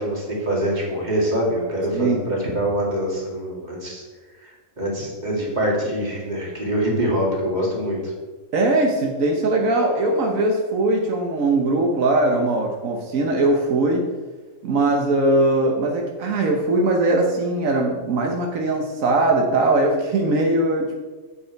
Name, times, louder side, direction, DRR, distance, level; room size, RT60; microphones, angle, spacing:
voice 1, 0.0-4.0 4.4-8.1, right 1 dB, 35° right, -3 dB, 2.5 m, -24 dB
voice 2, 8.5-14.1 14.6-21.0, right 2 dB, 85° right, 1 dB, 1.4 m, -20 dB
8.6 x 6.4 x 4.6 m, 1.3 s
omnidirectional pair, 1.4 m